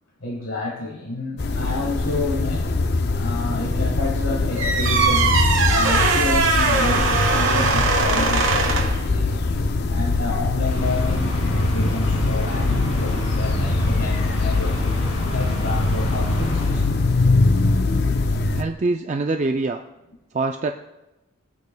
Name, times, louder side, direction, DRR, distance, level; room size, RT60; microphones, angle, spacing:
voice 1, 0.2-2.7 3.1-9.5 9.9-14.9 15.3-16.9, left 3 dB, 70° left, -1 dB, 1.5 m, -30 dB
sound 1, 1.4-18.6, left 3 dB, 50° left, 0.5 m, -22 dB
sound 2, 4.6-9.0, right 4 dB, 70° right, 1.3 m, -20 dB
sound 3, 10.6-17.4, equal, 85° left, 2.3 m, -27 dB
voice 2, 18.5-19.8 20.3-20.7, right 3 dB, 35° right, 5 dB, 0.3 m, -24 dB
20.0 x 8.3 x 2.2 m, 0.97 s
head